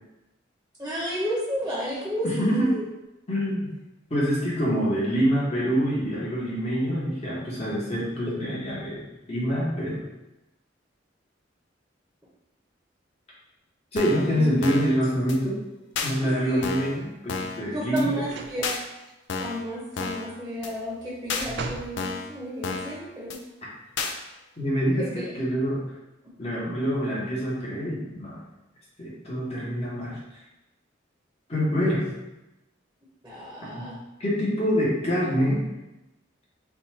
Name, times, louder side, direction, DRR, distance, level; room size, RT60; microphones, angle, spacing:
voice 1, 0.8-2.9 14.2-14.5 16.2-16.6 17.7-18.7 19.4-23.4 25.0-25.3 33.2-34.0, equal, 10° right, -7 dB, 0.9 m, -32 dB
voice 2, 2.2-2.7 3.3-3.7 4.1-10.0 13.9-15.6 16.0-18.1 24.6-25.8 26.4-28.4 29.0-30.2 31.5-32.0 33.6-33.9 34.2-35.6, equal, 35° left, -6 dB, 1.3 m, -26 dB
sound 1, 14.0-14.3 14.6-14.9 15.3-15.4 16.0-16.1 16.6-17.0 17.3-17.6 18.0-18.1 18.6-18.8 19.3-19.6 20.0-20.3 20.6-20.7 21.3-21.5 22.0-22.3 22.6-23.0 23.3-23.4 24.0-24.1, left 4 dB, 65° left, 0.5 m, -31 dB
sound 2, 16.6-17.1 18.2-18.6 19.0-19.1 20.7-22.0 22.5-22.6, right 3 dB, 60° right, 0.4 m, -38 dB
4.2 x 2.5 x 4.2 m, 0.97 s
head